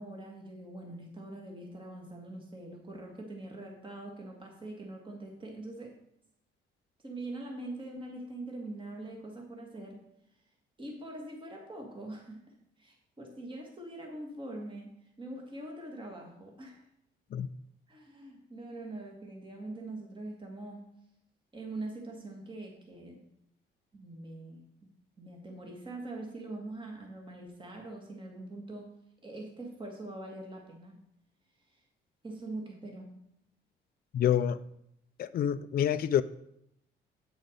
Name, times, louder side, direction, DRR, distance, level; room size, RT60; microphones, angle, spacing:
voice 1, 0.0-5.9 7.0-10.0 10.8-16.8 17.9-20.8 21.5-23.2 23.9-24.9 25.2-28.9 29.2-31.0 31.7-31.8 32.2-33.2, right 2 dB, 25° right, 1 dB, 1.9 m, -43 dB
voice 2, 34.1-34.6 35.2-36.2, left 10 dB, 50° left, 12 dB, 0.4 m, -27 dB
8.6 x 6.2 x 5.2 m, 0.77 s
cardioid pair, 90°, 20 cm